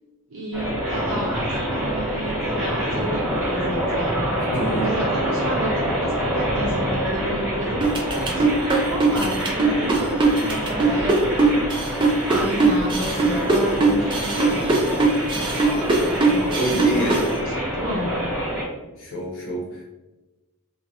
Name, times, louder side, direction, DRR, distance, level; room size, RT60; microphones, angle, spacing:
voice 1, 0.3-4.2 4.8-11.7 12.3-14.7 16.1-18.1, right 1 dB, 60° right, -5 dB, 0.6 m, -31 dB
sound 1, 0.5-18.6, equal, 5° right, 0.9 m, -26 dB
voice 2, 4.5-4.9 15.7-15.9 16.6-17.2 19.0-19.8, right 1 dB, 60° left, -4 dB, 0.6 m, -27 dB
sound 2, 7.8-17.3, right 3 dB, 20° right, 0.4 m, -20 dB
2.4 x 2.0 x 2.7 m, 1.1 s
head